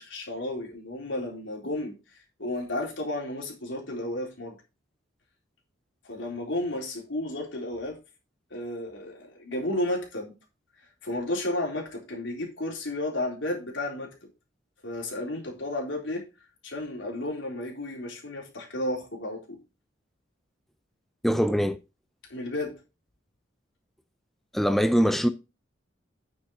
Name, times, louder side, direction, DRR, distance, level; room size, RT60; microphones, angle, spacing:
voice 1, 0.0-1.9 2.4-4.6 6.0-8.0 8.5-10.3 11.0-14.1 14.8-16.3 16.6-19.6 22.3-22.7, left 1 dB, 80° left, 3.8 m, -32 dB
voice 2, 21.2-21.8 24.5-25.3, equal, ahead, 0.5 m, -22 dB
9.7 x 6.3 x 4.3 m
head